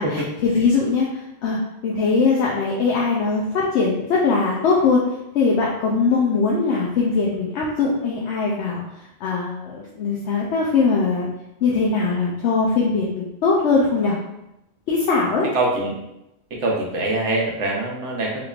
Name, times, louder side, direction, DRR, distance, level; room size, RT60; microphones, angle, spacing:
voice 1, 0.0-1.6 1.8-5.0 5.3-8.8 9.2-11.3 11.6-14.1 14.9-15.5, left 4 dB, 85° left, -3 dB, 0.9 m, -21 dB
voice 2, 15.5-15.9 16.6-18.4, right 2 dB, 90° right, -1 dB, 1.1 m, -23 dB
3.5 x 3.1 x 2.4 m, 0.87 s
omnidirectional pair, 1.1 m